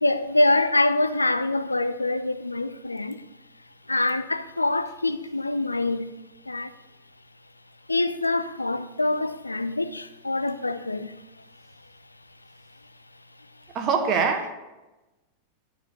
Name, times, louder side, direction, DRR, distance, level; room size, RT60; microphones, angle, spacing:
voice 1, 0.0-3.2 3.9-6.1 6.5-6.7 7.9-11.1, left 2 dB, 80° left, 0.5 m, -25 dB
voice 2, 13.7-14.5, right 5 dB, 35° right, 1.3 m, -23 dB
12.0 x 5.1 x 6.7 m
figure-of-eight pair, 90°, 0 cm